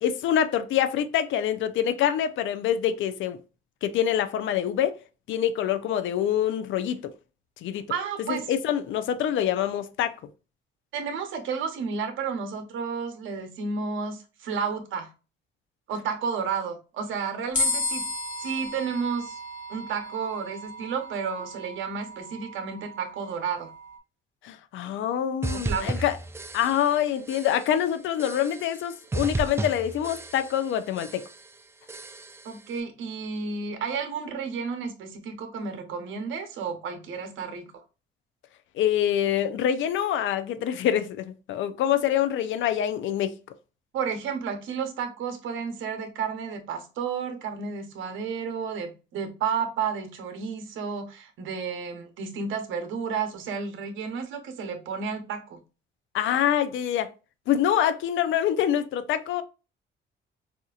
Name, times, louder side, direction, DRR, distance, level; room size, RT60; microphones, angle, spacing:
voice 1, 0.0-3.4 3.8-4.9 5.3-7.0 7.6-7.9 8.3-10.1 24.4-26.1 26.5-31.2 38.8-43.4 56.1-57.1 57.5-59.4, left 10 dB, 75° left, 0.5 m, -25 dB
voice 2, 7.9-8.5 10.9-15.1 15.9-18.0 18.4-19.4 19.7-23.7 25.5-26.1 32.4-37.7 43.9-55.6, right 6 dB, 80° right, 0.9 m, -32 dB
sound 1, 17.5-24.0, left 2 dB, 40° left, 1.2 m, -34 dB
sound 2, 25.4-27.0 27.3-27.8 28.2-28.8 29.1-30.7 31.0-31.5 31.9-32.5, right 2 dB, 15° right, 0.3 m, -34 dB
4.2 x 2.5 x 2.4 m
cardioid pair, 90°, 20 cm